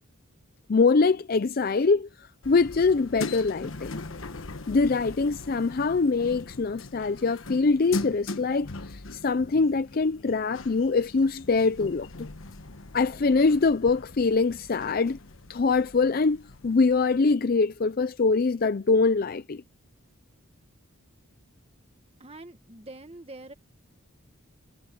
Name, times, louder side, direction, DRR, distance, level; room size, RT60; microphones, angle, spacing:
voice 1, 0.7-3.9 4.7-12.3 12.9-15.2 15.5-19.6, left 4 dB, 45° left, 0.4 m, -24 dB
sound 1, 2.4-17.2, left 2 dB, 65° left, 1.2 m, -40 dB
voice 2, 22.2-23.5, right 2 dB, 30° right, 1.7 m, -44 dB
head